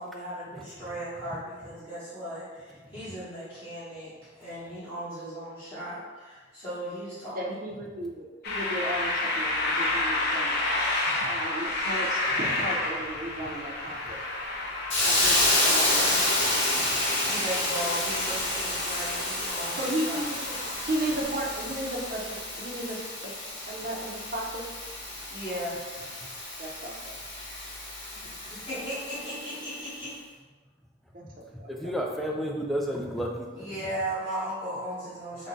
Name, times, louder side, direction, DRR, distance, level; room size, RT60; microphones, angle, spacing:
voice 1, 0.0-7.6 17.3-20.2 25.3-25.8 28.5-30.1 33.6-35.5, right 1 dB, 25° left, -14 dB, 1.1 m, -36 dB
voice 2, 7.3-10.9 11.3-14.2 15.0-16.3 19.8-22.2 22.6-23.0 23.7-24.6 26.6-27.2 31.1-31.2 31.6-31.7, right 1 dB, 45° right, -2 dB, 0.6 m, -34 dB
sound 1, 8.4-21.2, left 2 dB, 55° left, 0.6 m, -31 dB
Hiss, 14.9-29.7, left 1 dB, 75° left, 0.9 m, -29 dB
voice 3, 31.2-33.7, equal, ahead, 0 dB, 0.3 m, -32 dB
3.8 x 2.2 x 3.7 m, 1.3 s
head